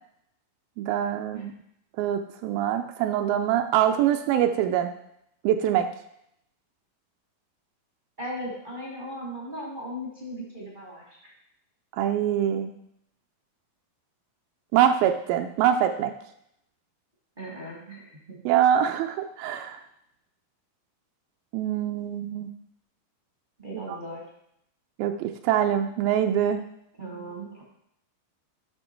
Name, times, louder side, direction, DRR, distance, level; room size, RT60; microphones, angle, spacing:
voice 1, 0.8-1.5 2.0-4.9 5.4-5.9 12.0-12.7 14.7-16.1 18.5-19.8 21.5-22.5 23.7-23.8 25.0-26.6, right 10 dB, 80° right, 5 dB, 2.3 m, -24 dB
voice 2, 8.2-11.3 17.4-18.4 23.6-24.2 27.0-27.6, equal, 45° right, -5 dB, 0.6 m, -37 dB
10.5 x 5.7 x 4.5 m, 0.77 s
omnidirectional pair, 4.2 m